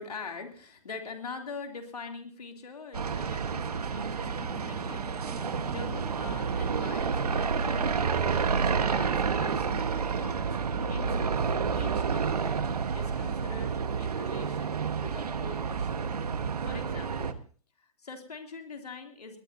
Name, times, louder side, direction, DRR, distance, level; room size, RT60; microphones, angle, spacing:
voice 1, 0.0-8.6 8.8-10.6 10.9-11.4 11.7-12.7 12.9-16.1 16.6-17.4 17.8-19.4, left 4 dB, 90° left, 3 dB, 3.1 m, -44 dB
sound 1, 2.9-17.3, right 6 dB, 85° right, 1.4 m, -29 dB
sound 2, 4.2-16.5, equal, ahead, 5.2 m, -50 dB
21.5 x 19.5 x 2.8 m, 0.42 s
hypercardioid pair, 120°, 19 cm